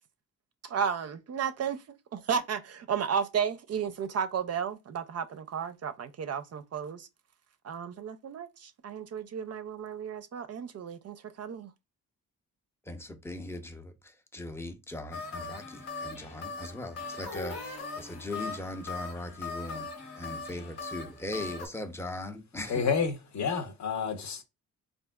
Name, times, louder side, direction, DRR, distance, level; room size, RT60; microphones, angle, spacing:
voice 1, 0.6-1.8 2.1-7.1 7.6-11.7, right 7 dB, 50° right, 0.4 m, -33 dB
voice 2, 12.9-19.9 20.1-22.8, left 1 dB, 5° left, 0.6 m, -39 dB
sound 1, 15.1-21.7, left 4 dB, 80° left, 1.2 m, -40 dB
voice 3, 22.7-24.4, left 6 dB, 55° left, 0.8 m, -29 dB
3.4 x 2.6 x 2.2 m
cardioid pair, 65°, 34 cm